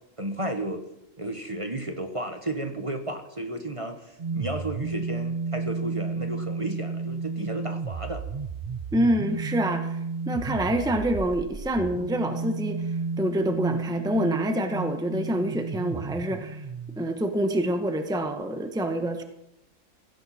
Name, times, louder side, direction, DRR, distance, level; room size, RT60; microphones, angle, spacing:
voice 1, 0.2-0.8 1.2-8.2, right 1 dB, 25° right, 5 dB, 1.3 m, -33 dB
sound 1, 4.2-17.0, right 4 dB, 40° right, 0.6 m, -32 dB
voice 2, 8.9-10.0 10.3-16.7 17.0-19.2, right 1 dB, 5° right, 6 dB, 1.1 m, -26 dB
16.5 x 16.5 x 4.3 m, 0.83 s
omnidirectional pair, 1.3 m